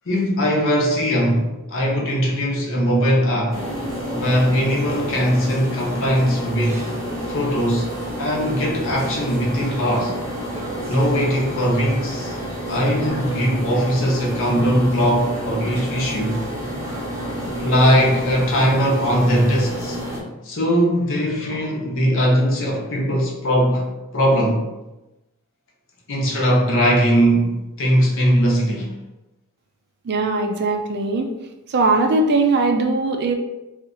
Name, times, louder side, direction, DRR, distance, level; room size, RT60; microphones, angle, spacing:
voice 1, 0.1-3.6 4.1-6.9 7.3-7.9 8.2-10.2 10.9-12.4 12.7-16.4 17.6-20.0 20.4-24.6 26.1-28.9, equal, 60° left, -1 dB, 0.8 m, -20 dB
sound 1, 3.5-20.2, equal, 15° right, 0.8 m, -29 dB
voice 2, 30.0-31.3 31.7-33.3, right 3 dB, 50° right, 4 dB, 0.4 m, -20 dB
2.9 x 2.4 x 3.8 m, 0.98 s
head